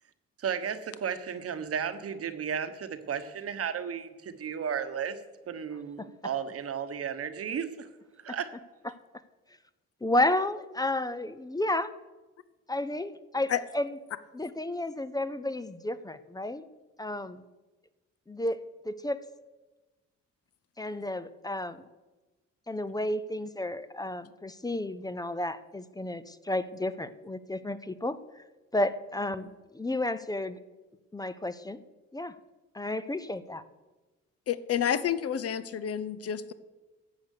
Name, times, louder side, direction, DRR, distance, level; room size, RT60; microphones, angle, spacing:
voice 1, 0.4-5.2 5.5-7.9 8.2-8.5, right 7 dB, 50° right, 10 dB, 1.1 m, -34 dB
voice 2, 10.0-11.9 12.7-14.0 14.3-16.6 17.0-17.4 18.3-19.2 20.8-21.8 22.7-28.2 28.7-30.6 31.1-31.8 32.1-32.4 32.7-33.6, left 1 dB, 15° left, 13 dB, 0.6 m, -32 dB
voice 3, 34.5-36.5, left 9 dB, 50° left, 15 dB, 0.8 m, -29 dB
13.0 x 8.2 x 6.6 m, 1.2 s
cardioid pair, 90°, 30 cm